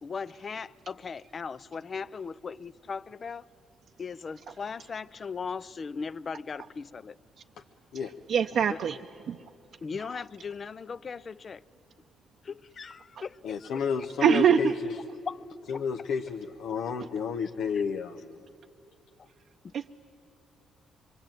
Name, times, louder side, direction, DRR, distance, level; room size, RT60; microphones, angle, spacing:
voice 1, 0.0-3.5 4.0-7.2 8.7-8.8 9.8-11.6 12.4-14.1 15.3-15.8 17.7-17.8 19.2-19.3 19.6-19.7, left 5 dB, 40° left, 0.5 m, -38 dB
voice 2, 8.3-9.0 9.3-9.4 14.2-14.7 19.7-19.9, right 8 dB, 60° right, 0.7 m, -23 dB
voice 3, 13.4-15.0 15.7-18.4, left 6 dB, 80° left, 0.9 m, -31 dB
25.5 x 23.0 x 9.1 m
cardioid pair, 90°, 0 cm